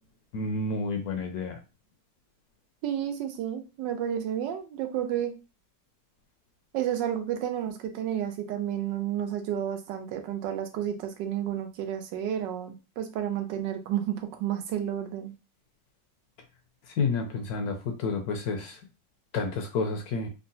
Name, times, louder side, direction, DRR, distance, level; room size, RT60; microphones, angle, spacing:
voice 1, 0.3-1.6 16.9-18.8 19.3-20.3, left 4 dB, 70° left, 4 dB, 1.0 m, -30 dB
voice 2, 2.8-5.4 6.7-15.3, right 10 dB, 90° right, 6 dB, 1.3 m, -31 dB
3.7 x 2.1 x 2.6 m, 0.29 s
omnidirectional pair, 1.9 m